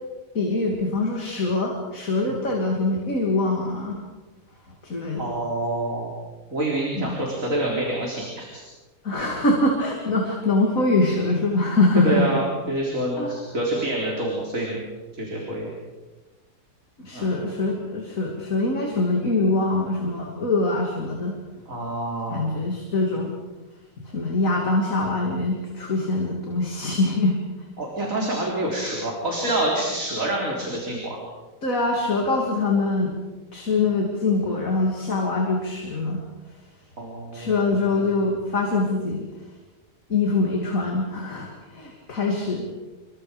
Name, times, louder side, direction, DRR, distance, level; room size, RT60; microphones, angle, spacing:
voice 1, 0.3-4.0 4.8-5.2 6.9-7.2 9.0-12.3 13.2-13.3 17.0-21.3 22.3-23.4 24.0-27.4 31.6-33.1 33.5-36.2 37.3-39.2 40.1-42.7, left 2 dB, 50° left, 0 dB, 3.2 m, -23 dB
voice 2, 5.2-6.1 6.5-8.6 11.9-14.8 15.1-15.7 17.1-17.3 21.7-22.4 27.8-31.2 37.0-37.9, right 1 dB, 50° right, -2 dB, 4.3 m, -27 dB
29.0 x 24.5 x 5.2 m, 1.2 s
omnidirectional pair, 1.8 m